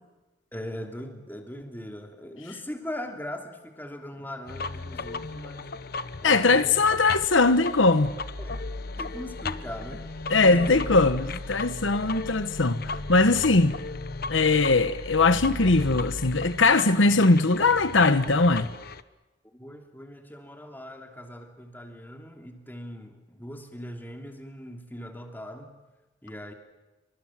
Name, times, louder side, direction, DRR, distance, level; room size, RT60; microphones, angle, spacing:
voice 1, 0.5-5.7 6.2-6.9 8.4-8.7 9.0-10.1 10.4-10.9 19.5-25.7 26.2-26.5, equal, 10° left, 2.9 m, -40 dB
sound 1, 4.5-19.0, left 3 dB, 50° left, 1.0 m, -36 dB
voice 2, 6.2-8.1 10.3-13.8 14.3-18.7, left 3 dB, 80° left, 1.2 m, -21 dB
27.5 x 24.5 x 7.6 m
head